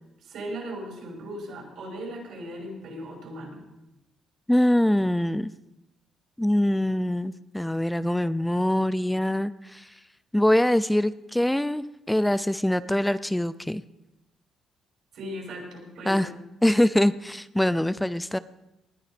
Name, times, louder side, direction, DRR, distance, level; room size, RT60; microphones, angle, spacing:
voice 1, 0.2-3.6 15.1-16.3, equal, 75° right, 0 dB, 6.1 m, -37 dB
voice 2, 4.5-5.5 6.4-9.8 10.3-13.8 16.1-16.3 16.6-18.4, left 1 dB, 5° left, 15 dB, 0.5 m, -23 dB
19.5 x 9.8 x 5.2 m, 0.93 s
cardioid pair, 90°, 0 cm